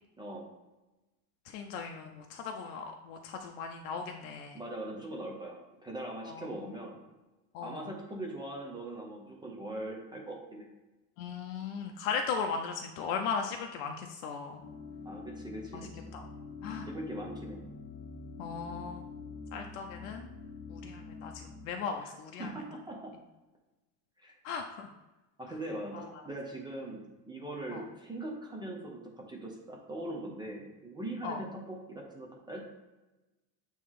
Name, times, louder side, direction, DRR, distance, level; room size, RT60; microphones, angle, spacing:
voice 1, 0.2-0.5 4.5-7.0 7.6-10.7 15.0-16.1 16.8-17.6 22.0-22.1 22.4-23.1 24.2-24.4 25.4-32.6, right 1 dB, 10° right, -1 dB, 0.7 m, -41 dB
voice 2, 1.5-4.6 6.3-6.5 7.5-7.9 11.2-14.6 15.7-16.3 16.6-16.9 18.4-19.0 19.5-20.3 20.7-22.5 24.4-24.9 25.9-26.0 27.7-27.8 31.2-31.4, left 5 dB, 80° left, 4 dB, 0.7 m, -37 dB
sound 1, 14.6-21.7, left 4 dB, 25° left, 0.4 m, -45 dB
8.4 x 3.1 x 3.7 m, 1.1 s
cardioid pair, 150°, 40 cm